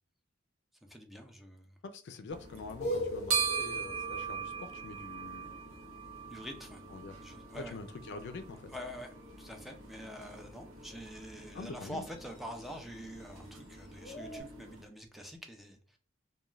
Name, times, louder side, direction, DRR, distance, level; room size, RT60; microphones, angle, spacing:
voice 1, 0.9-1.7 6.3-7.8 8.7-16.0, equal, ahead, 0.4 m, -46 dB
voice 2, 1.8-5.6 6.9-7.2 7.5-8.6 11.5-12.1, left 3 dB, 60° left, 0.4 m, -45 dB
sound 1, 2.3-14.8, right 6 dB, 90° right, 0.8 m, -41 dB
sound 2, 2.8-5.7 8.7-14.4, equal, 35° left, 0.7 m, -43 dB
2.3 x 2.2 x 3.0 m
head